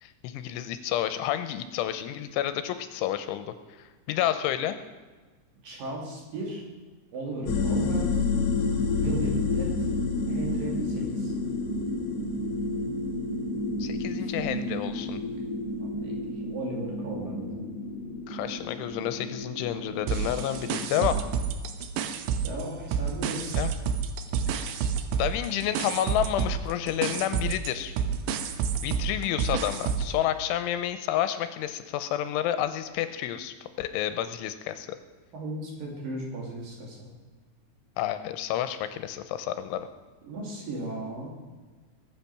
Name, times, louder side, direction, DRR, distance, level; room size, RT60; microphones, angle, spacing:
voice 1, 0.0-4.8 13.8-15.2 18.3-21.3 23.5-23.7 24.5-24.8 25.2-27.9 28.8-34.9 38.0-39.9, left 11 dB, 85° left, 11 dB, 3.1 m, -30 dB
voice 2, 5.6-6.7 7.1-8.2 9.0-9.9 10.3-11.3 14.2-14.3 15.8-17.6 22.4-23.7 35.3-37.1 40.2-41.3, right 2 dB, 50° right, -1 dB, 3.9 m, -36 dB
sound 1, 7.5-21.2, left 3 dB, 65° left, 2.7 m, -30 dB
sound 2, 20.1-22.6 22.9-30.2, right 7 dB, 75° right, 2.9 m, -29 dB
21.0 x 9.0 x 6.0 m, 1.3 s
omnidirectional pair, 5.6 m